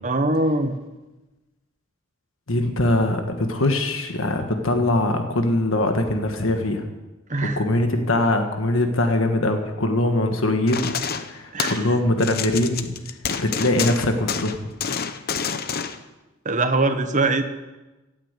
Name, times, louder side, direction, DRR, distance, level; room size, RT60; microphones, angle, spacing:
voice 1, 0.0-0.7 7.3-7.6 11.5-11.9 16.4-17.4, right 2 dB, 35° right, 8 dB, 1.2 m, -22 dB
voice 2, 2.5-6.8 7.4-10.9 11.2-12.9 13.4-14.6, left 1 dB, 70° left, 5 dB, 1.5 m, -22 dB
sound 1, 10.7-11.9 12.2-16.0, left 6 dB, 45° left, 0.8 m, -28 dB
15.5 x 8.9 x 8.2 m, 1.1 s
head